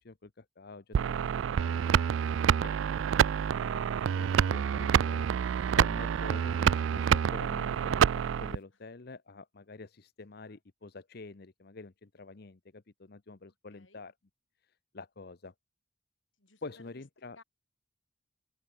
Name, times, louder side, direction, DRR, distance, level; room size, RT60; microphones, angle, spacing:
voice 1, 0.0-1.2 1.6-1.7 2.6-14.1 14.6-15.5 16.6-17.4, left 3 dB, 55° left, 0.8 m, -48 dB
sound 1, 0.9-8.6, right 8 dB, 85° right, 0.3 m, -27 dB
voice 2, 13.7-14.0 16.4-16.9 17.4-17.5, left 3 dB, 80° left, 7.7 m, -58 dB
open air
head